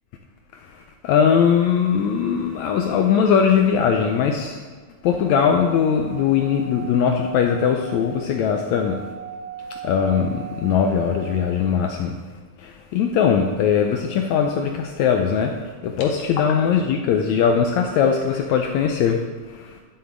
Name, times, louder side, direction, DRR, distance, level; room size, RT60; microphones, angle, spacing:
voice 1, 1.0-4.6 5.0-9.0 9.8-12.2 12.6-15.5 15.8-19.2 19.5-19.8, left 7 dB, 80° left, 3 dB, 1.6 m, -20 dB
Singing / Glass, 5.1-11.6, right 5 dB, 10° right, 2.3 m, -39 dB
11.0 x 6.8 x 3.8 m, 1.5 s
omnidirectional pair, 3.7 m